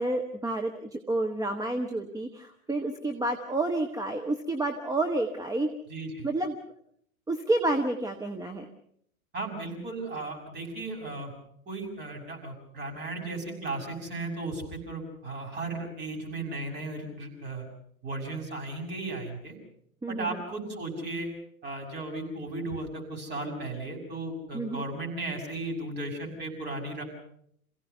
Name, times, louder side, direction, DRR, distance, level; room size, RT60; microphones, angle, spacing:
voice 1, 0.0-5.7 6.2-6.5 7.3-8.7 20.0-20.4 24.5-24.8, right 2 dB, 10° right, 4 dB, 1.4 m, -29 dB
voice 2, 5.9-6.3 9.3-11.3 11.6-17.7 18.0-19.5 20.1-21.3 21.6-27.0, right 2 dB, 25° right, 1 dB, 6.8 m, -35 dB
27.5 x 16.5 x 6.9 m, 0.70 s
figure-of-eight pair, 95°, 43 cm